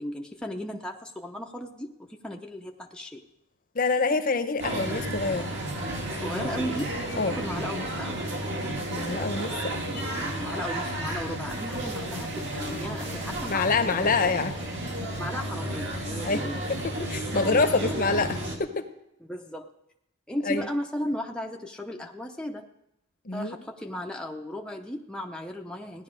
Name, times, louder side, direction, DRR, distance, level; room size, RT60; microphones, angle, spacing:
voice 1, 0.0-3.2 6.1-8.2 10.2-14.3 15.2-16.6 17.3-17.8 19.3-19.7 20.3-22.7 23.3-26.0, left 1 dB, 5° left, 1 dB, 0.6 m, -36 dB
voice 2, 3.7-5.5 7.2-7.4 8.9-9.8 13.5-14.5 16.2-18.8 20.4-20.7 23.2-23.6, left 4 dB, 40° left, 9 dB, 0.8 m, -26 dB
sound 1, 4.6-18.6, right 1 dB, 55° right, 2.2 m, -32 dB
16.5 x 10.5 x 5.0 m, 0.85 s
head